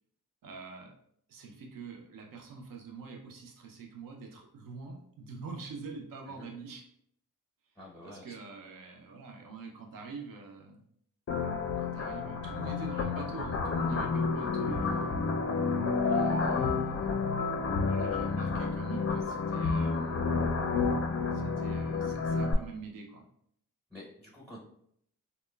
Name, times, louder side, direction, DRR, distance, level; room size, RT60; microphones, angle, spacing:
voice 1, 0.4-0.9 1.3-6.8 8.0-10.8 11.8-15.2 16.0-17.1 17.8-20.3 21.3-23.2, right 4 dB, 70° right, 2 dB, 0.5 m, -45 dB
voice 2, 7.8-8.4 23.9-24.6, left 1 dB, 5° left, -4 dB, 0.7 m, -49 dB
sound 1, 11.3-22.5, left 4 dB, 40° left, 0.4 m, -30 dB
2.9 x 2.0 x 2.2 m, 0.68 s
supercardioid pair, 40°, 36 cm